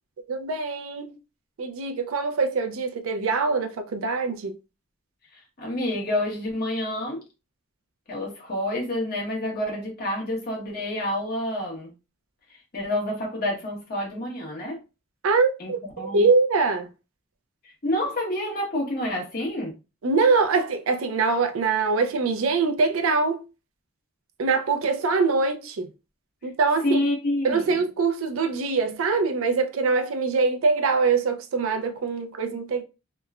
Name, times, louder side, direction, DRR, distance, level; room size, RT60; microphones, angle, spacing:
voice 1, 0.3-1.2 1.6-4.6 15.2-16.9 20.0-23.4 24.4-25.9 26.4-27.0 27.4-32.8, right 4 dB, 85° right, 0.5 m, -23 dB
voice 2, 5.3-7.2 8.1-11.9 12.5-14.8 15.6-16.3 17.6-19.7 26.8-27.8, left 1 dB, 45° left, 1.1 m, -28 dB
3.0 x 2.1 x 2.3 m
head